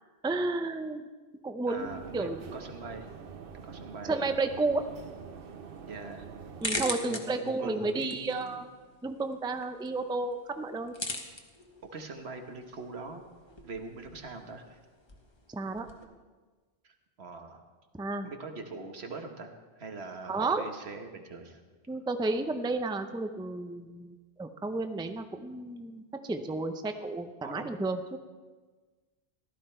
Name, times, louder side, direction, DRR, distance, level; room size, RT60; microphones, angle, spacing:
voice 1, 0.2-1.1 1.4-2.5 4.1-4.8 6.6-8.6 9.0-10.9 15.5-15.9 17.9-18.3 20.3-20.6 21.9-28.2, right 3 dB, 5° right, 7 dB, 0.5 m, -32 dB
voice 2, 1.7-3.1 3.6-4.1 5.9-6.3 7.0-8.6 11.9-13.2 13.6-14.8 16.8-17.6 18.2-21.6 27.4-27.7, right 3 dB, 80° right, 4 dB, 1.5 m, -43 dB
sound 1, 1.8-6.9, right 6 dB, 65° right, 0.9 m, -46 dB
sound 2, 4.8-16.0, left 2 dB, 25° left, 1.1 m, -43 dB
15.5 x 12.0 x 4.4 m, 1.3 s
omnidirectional pair, 1.1 m